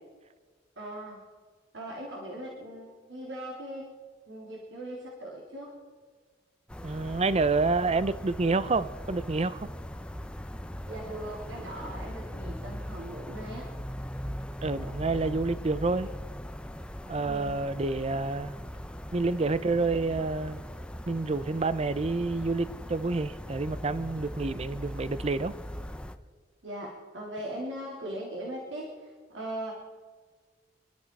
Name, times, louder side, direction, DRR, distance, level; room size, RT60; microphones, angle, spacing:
voice 1, 0.8-1.2 1.7-3.9 4.3-5.7 10.9-13.7 17.2-17.6 26.6-29.7, right 1 dB, 80° right, 3.2 m, -39 dB
sound 1, 6.7-26.2, equal, 5° left, 0.6 m, -40 dB
voice 2, 6.8-9.7 14.6-16.1 17.1-18.6 19.1-20.6 21.1-25.5, right 3 dB, 35° right, 0.6 m, -28 dB
25.0 x 12.5 x 4.6 m
head